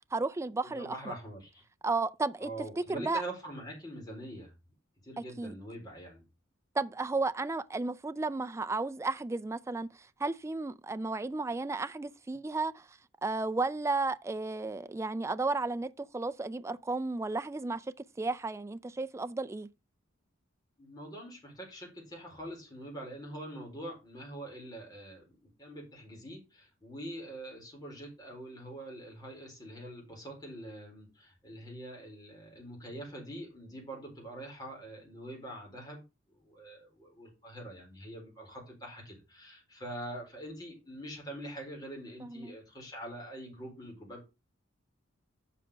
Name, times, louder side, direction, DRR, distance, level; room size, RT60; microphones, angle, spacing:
voice 1, 0.0-1.1 1.8-2.5 2.9-3.2 5.2-5.5 6.8-9.9 10.2-12.9 13.2-19.7 42.2-42.5, right 3 dB, 15° right, 0.3 m, -33 dB
voice 2, 0.6-1.6 2.4-4.5 5.0-6.2 20.8-25.2 25.6-36.0 36.4-44.3, right 1 dB, 20° left, 4.3 m, -44 dB
7.6 x 5.8 x 5.0 m
head